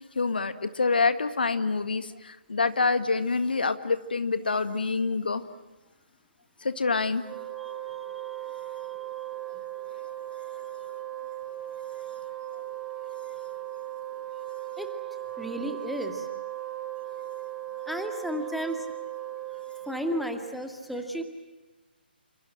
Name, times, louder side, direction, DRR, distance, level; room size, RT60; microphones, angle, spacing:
voice 1, 0.2-0.5 0.8-2.0 2.5-5.4 6.8-7.2, left 4 dB, 60° left, 11 dB, 1.8 m, -26 dB
Wind instrument woodwind instrument, 7.2-20.6, right 13 dB, 15° right, 2.9 m, -37 dB
voice 2, 15.4-16.3 17.9-18.9 19.9-21.2, equal, ahead, 5 dB, 2.2 m, -33 dB
29.5 x 26.0 x 7.6 m, 1.1 s
figure-of-eight pair, 135°, 6 cm